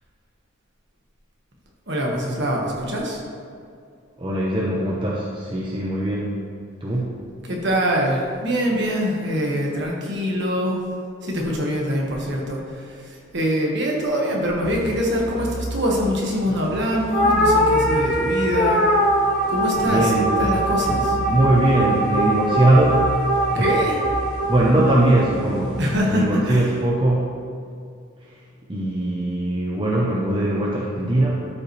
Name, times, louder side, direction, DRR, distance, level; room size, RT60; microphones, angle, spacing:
voice 1, 1.9-3.2 7.4-10.8 11.2-18.8 19.5-21.2 23.5-24.0 25.8-26.7, equal, 50° right, -2 dB, 1.5 m, -24 dB
voice 2, 4.2-6.4 6.8-7.2 19.8-20.5 21.3-23.2 23.5-23.7 24.5-25.8 26.1-27.3 28.2-28.4 28.7-31.5, right 1 dB, 25° right, -4 dB, 0.7 m, -21 dB
sound 1, 14.6-26.5, right 1 dB, 75° left, 1.2 m, -33 dB
sound 2, 17.1-25.7, right 1 dB, 40° left, 1.1 m, -22 dB
12.0 x 5.6 x 3.2 m, 2.3 s
head